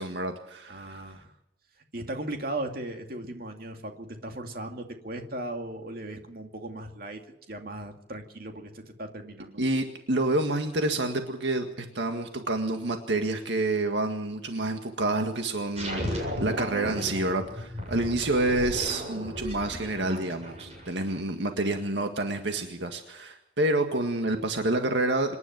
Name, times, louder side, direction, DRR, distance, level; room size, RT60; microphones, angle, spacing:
voice 1, 0.0-1.0 9.6-25.4, right 2 dB, 75° right, 5 dB, 1.9 m, -28 dB
voice 2, 0.7-1.3 1.9-7.2 7.5-9.6 17.9-18.1, right 1 dB, 55° right, 4 dB, 2.4 m, -37 dB
sound 1, 15.8-21.2, equal, 35° right, 7.7 m, -35 dB
26.5 x 11.0 x 9.3 m, 0.81 s
head